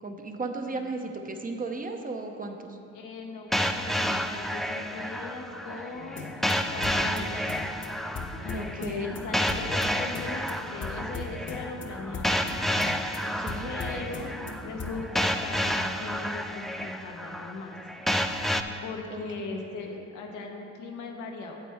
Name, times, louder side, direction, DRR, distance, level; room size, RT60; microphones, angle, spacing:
voice 1, 0.0-2.8 8.5-9.2 13.4-13.7 19.1-19.6, right 3 dB, 30° right, 4 dB, 0.7 m, -35 dB
voice 2, 2.9-7.6 8.4-12.6 13.6-14.3 14.6-17.8 18.5-21.6, left 3 dB, 85° left, 1 dB, 1.0 m, -39 dB
sound 1, 3.5-18.6, equal, ahead, 0.3 m, -30 dB
sound 2, 5.9-15.1, left 3 dB, 40° left, 0.9 m, -39 dB
9.1 x 7.5 x 3.5 m, 2.7 s
cardioid pair, 90°, 30 cm